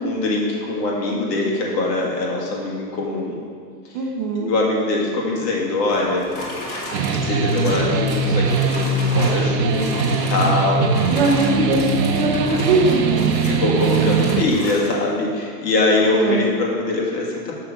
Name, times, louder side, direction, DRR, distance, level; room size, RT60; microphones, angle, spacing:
voice 1, 0.0-3.4 3.9-4.0 4.4-6.3 7.2-11.1 13.5-17.5, left 2 dB, 80° left, -2 dB, 2.1 m, -22 dB
voice 2, 3.9-4.5 11.1-13.4 16.0-16.4, right 2 dB, 30° right, 0 dB, 0.6 m, -21 dB
sound 1, 5.9-9.4 9.7-10.6 10.9-15.0, left 1 dB, 25° left, 1.5 m, -33 dB
sound 2, 6.9-14.4, right 5 dB, 85° right, 0.8 m, -21 dB
6.7 x 5.8 x 4.9 m, 2.1 s
supercardioid pair, 160°, 49 cm